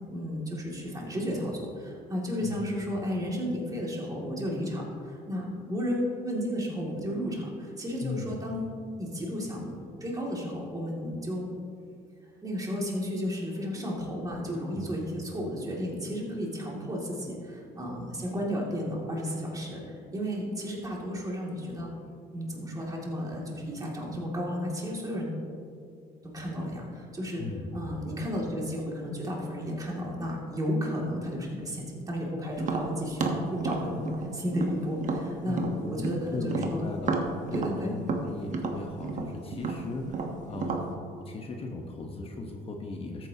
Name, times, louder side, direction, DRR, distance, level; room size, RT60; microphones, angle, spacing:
voice 1, 0.1-11.5 12.4-21.9 22.3-25.3 26.3-27.4 27.7-36.8 37.5-38.0, equal, 20° right, -2 dB, 2.4 m, -33 dB
voice 2, 8.0-8.4 14.7-14.9 27.4-28.0 35.4-36.0 36.3-37.2 37.5-40.8 41.2-43.3, left 3 dB, 35° left, 2 dB, 1.1 m, -37 dB
Tap, 32.6-36.2 36.5-40.9, right 4 dB, 45° right, 1.2 m, -31 dB
13.5 x 9.0 x 2.8 m, 2.4 s
cardioid pair, 110°, 17 cm